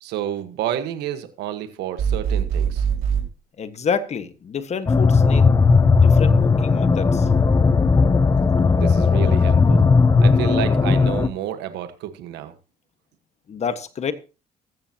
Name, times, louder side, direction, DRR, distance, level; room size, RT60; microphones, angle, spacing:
voice 1, 0.0-2.8 8.8-9.8 10.2-12.5, right 11 dB, 85° right, 1.4 m, -30 dB
sound 1, 2.0-3.3, right 7 dB, 65° right, 5.0 m, -22 dB
voice 2, 3.6-5.5 5.9-7.3 13.5-14.1, left 6 dB, 40° left, 1.5 m, -28 dB
sound 2, 4.9-11.3, left 4 dB, 20° left, 0.8 m, -16 dB
14.5 x 14.0 x 2.9 m
cardioid pair, 110°, 17 cm